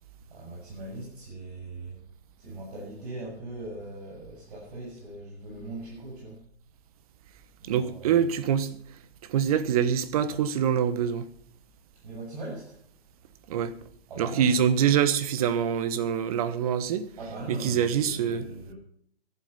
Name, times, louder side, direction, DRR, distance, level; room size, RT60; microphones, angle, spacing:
voice 1, 0.3-2.0 2.4-6.4 7.6-8.3 12.0-12.8 14.1-14.6 17.2-18.8, right 2 dB, 50° right, 7.6 m, -40 dB
voice 2, 7.6-8.8 9.2-11.3 13.5-13.7 14.2-17.1 17.5-18.5, right 8 dB, 35° right, 1.2 m, -25 dB
14.5 x 11.0 x 5.6 m
hypercardioid pair, 145°, 32 cm